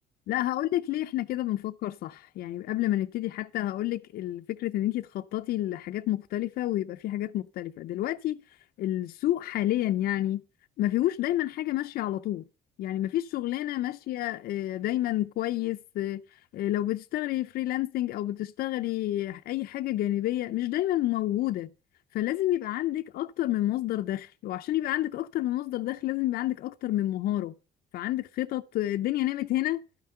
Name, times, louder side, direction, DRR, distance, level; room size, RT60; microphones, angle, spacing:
voice 1, 0.3-10.4 10.8-12.4 12.8-21.7 22.1-27.5 27.9-29.8, left 14 dB, 65° left, 0.5 m, -29 dB
12.0 x 5.7 x 6.6 m
cardioid pair, 110°, 17 cm